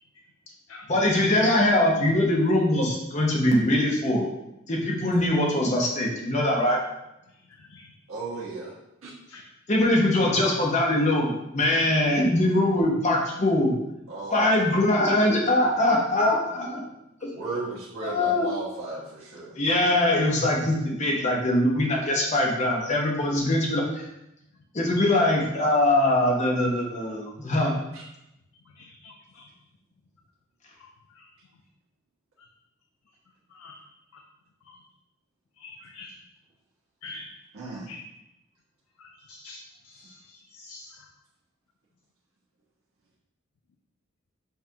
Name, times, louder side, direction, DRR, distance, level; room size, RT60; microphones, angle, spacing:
voice 1, 0.9-4.3 4.7-6.8 9.7-13.7 14.3-16.8 18.0-18.5 19.6-24.1 24.7-27.8, left 1 dB, 35° left, -1 dB, 0.8 m, -22 dB
voice 2, 8.1-8.7 9.0-9.1 14.1-14.9 17.3-19.5 27.9-28.0 37.5-37.9, right 3 dB, 80° right, -7 dB, 1.2 m, -35 dB
voice 3, 28.8-29.4 31.2-31.3 33.5-33.8 34.7-34.8 35.6-36.1 37.0-37.2 37.9-38.0 39.0-39.6 39.9-40.1 40.5-40.9, left 2 dB, 85° left, 1 dB, 0.4 m, -43 dB
5.6 x 2.4 x 2.8 m, 0.87 s
head